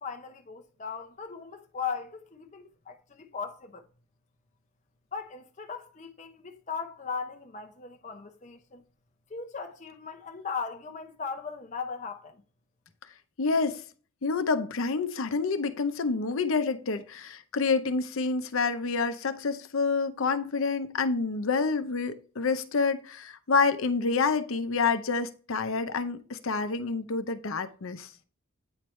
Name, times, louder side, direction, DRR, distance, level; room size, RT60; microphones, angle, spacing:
voice 1, 0.0-3.9 5.1-8.8 9.3-12.4, left 5 dB, 35° left, 0.6 m, -38 dB
voice 2, 13.4-13.8 14.2-28.1, left 4 dB, 80° left, 0.7 m, -28 dB
9.0 x 4.6 x 3.1 m
head